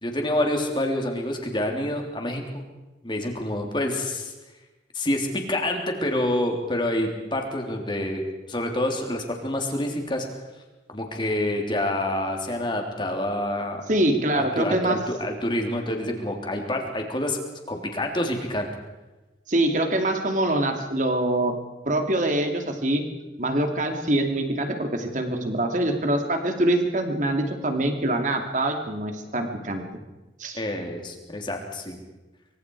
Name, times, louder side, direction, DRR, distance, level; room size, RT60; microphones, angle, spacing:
voice 1, 0.0-2.6 3.0-4.3 4.9-10.3 10.9-13.8 14.3-17.4 17.7-18.7 30.5-32.0, left 1 dB, 25° left, 2 dB, 3.4 m, -27 dB
voice 2, 13.9-15.0 19.5-21.5 21.9-23.0 23.4-29.8 30.4-30.6, right 1 dB, 45° right, 5 dB, 2.7 m, -24 dB
24.5 x 24.5 x 4.8 m, 1.1 s
head